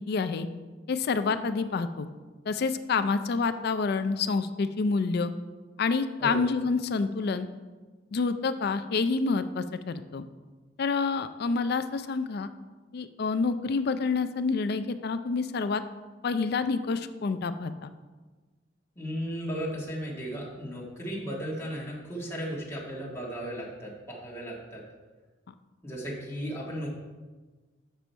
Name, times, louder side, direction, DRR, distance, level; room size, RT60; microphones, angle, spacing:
voice 1, 0.1-0.5 0.9-2.1 2.5-5.3 5.8-7.5 8.1-10.2 10.8-12.5 12.9-15.8 16.2-17.9, left 4 dB, 55° left, 11 dB, 0.4 m, -28 dB
voice 2, 18.9-24.8 25.8-26.9, equal, 15° left, -5 dB, 1.7 m, -35 dB
6.8 x 6.1 x 4.5 m, 1.3 s
head